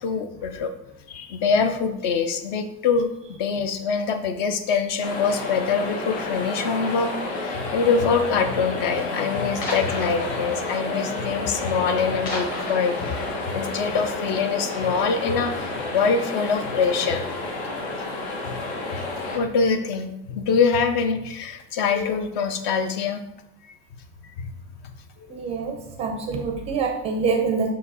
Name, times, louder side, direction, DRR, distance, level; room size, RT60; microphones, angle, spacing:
voice 1, 0.0-0.7 1.1-3.1 3.4-7.1 7.4-13.2 13.5-17.2 18.4-18.6 19.3-23.2 23.6-23.7 24.4-24.5 25.3-25.4, left 5 dB, 50° left, 8 dB, 0.7 m, -24 dB
sound 1, 2.0-2.2 2.9-3.4 3.6-4.1 4.4-4.7 5.2-5.3 5.5-5.6 6.4-6.9 7.7-7.8 8.1-8.2 8.6-8.7 9.0-9.1 9.6-14.3, left 2 dB, 30° left, 1.2 m, -37 dB
sound 2, 5.0-19.4, left 2 dB, 80° left, 1.5 m, -30 dB
voice 2, 25.3-27.7, right 5 dB, 20° right, 4 dB, 0.5 m, -25 dB
6.0 x 4.9 x 4.0 m, 0.89 s
supercardioid pair, 175°, 31 cm